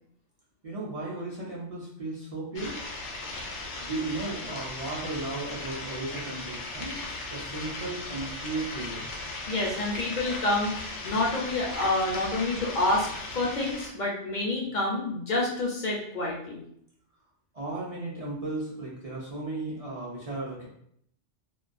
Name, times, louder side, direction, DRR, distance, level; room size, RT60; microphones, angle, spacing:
voice 1, 0.6-2.8 3.8-7.0 7.3-9.1 17.5-20.7, right 2 dB, 45° right, -5 dB, 0.4 m, -35 dB
sound 1, 2.5-13.9, left 2 dB, 80° left, 0.9 m, -37 dB
voice 2, 9.5-13.1 13.3-16.6, left 2 dB, 55° left, -3 dB, 0.5 m, -28 dB
2.2 x 2.2 x 2.4 m, 0.69 s
omnidirectional pair, 1.2 m